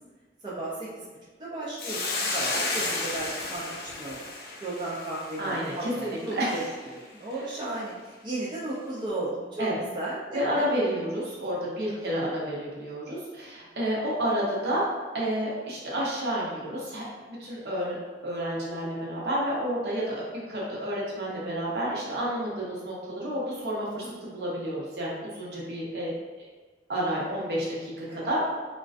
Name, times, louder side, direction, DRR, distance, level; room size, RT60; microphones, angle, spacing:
voice 1, 0.4-1.1 1.4-4.2 4.6-6.6 6.9-9.7 9.9-10.6 11.9-12.3 24.0-24.1 28.1-28.3, right 2 dB, 25° right, -8 dB, 0.4 m, -35 dB
Hiss, 1.8-6.3, left 3 dB, 55° left, 0.4 m, -32 dB
voice 2, 5.4-6.7 9.6-9.8 10.3-14.8 15.1-17.0 17.4-18.0 18.2-26.1 26.9-28.4, equal, 65° right, -6 dB, 0.7 m, -30 dB
2.3 x 2.2 x 2.4 m, 1.4 s
head